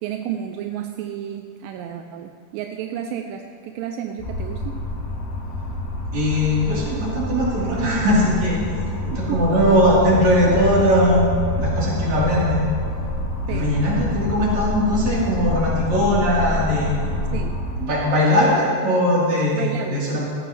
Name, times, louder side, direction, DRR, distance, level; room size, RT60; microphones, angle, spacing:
voice 1, 0.0-4.8 9.1-9.6 13.5-13.8 17.3-17.6 19.5-20.3, right 9 dB, 85° right, 5 dB, 2.3 m, -31 dB
sound 1, 4.2-17.8, left 1 dB, 65° left, 6.1 m, -27 dB
voice 2, 6.1-8.6 9.0-11.3 11.6-12.6 13.5-17.2 17.8-20.3, equal, 55° right, -7 dB, 5.0 m, -20 dB
18.5 x 14.5 x 3.3 m, 2.3 s
omnidirectional pair, 3.9 m